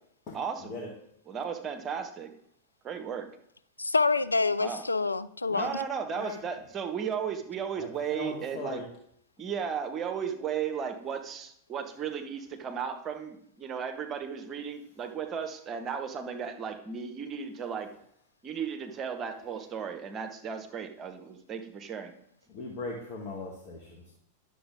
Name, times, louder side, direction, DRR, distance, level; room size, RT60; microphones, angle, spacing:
voice 1, 0.3-0.8 1.3-2.3 2.8-3.3 4.6-4.8 5.6-8.8 9.4-17.9 18.4-22.1, right 7 dB, 25° right, 6 dB, 1.1 m, -35 dB
voice 2, 3.8-5.8, left 3 dB, 80° left, 14 dB, 0.4 m, -27 dB
voice 3, 7.8-8.8 22.5-24.2, left 3 dB, 40° left, -1 dB, 1.5 m, -39 dB
10.0 x 7.1 x 3.6 m, 0.70 s
figure-of-eight pair, 90°, 0 cm